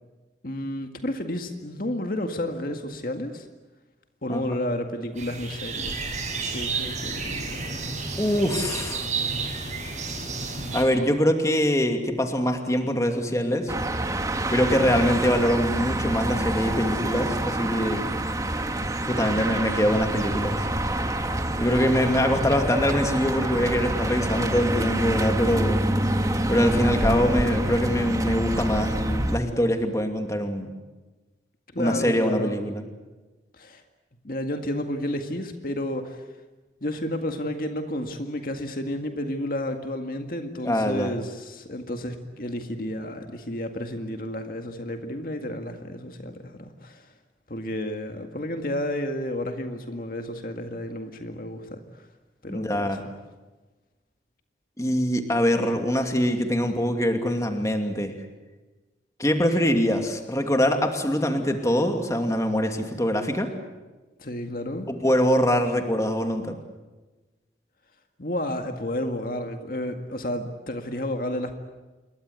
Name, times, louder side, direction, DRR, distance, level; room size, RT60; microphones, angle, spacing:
voice 1, 0.4-3.5 4.2-6.1 6.5-7.8 31.7-32.6 33.6-33.8 34.2-36.2 36.8-47.1 47.5-52.1 52.4-53.0 64.2-64.9 68.2-71.5, left 1 dB, 50° left, 5 dB, 1.9 m, -31 dB
sound 1, 5.2-10.8, right 4 dB, 40° right, 7.2 m, -31 dB
voice 2, 8.2-9.1 10.7-13.7 14.5-18.0 19.1-20.6 21.6-25.8 26.5-30.7 31.8-32.8 40.6-41.1 52.5-53.0 54.8-58.1 59.2-63.5 64.9-66.6, equal, 20° left, 5 dB, 2.6 m, -23 dB
sound 2, 13.7-29.4, right 1 dB, 20° right, 1.7 m, -26 dB
27.5 x 23.0 x 8.3 m, 1.2 s
head